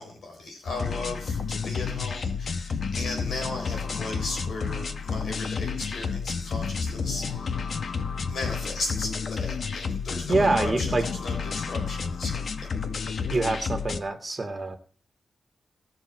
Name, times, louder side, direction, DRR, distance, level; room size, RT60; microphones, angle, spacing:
voice 1, 0.0-7.6 8.3-12.7, left 2 dB, 90° left, 2 dB, 3.8 m, -36 dB
sound 1, 0.7-14.0, left 5 dB, 65° left, 1.2 m, -30 dB
voice 2, 10.3-11.0 13.3-14.8, right 3 dB, 30° right, 5 dB, 1.8 m, -25 dB
19.0 x 7.1 x 4.5 m, 0.40 s
wide cardioid pair, 100°, 0 cm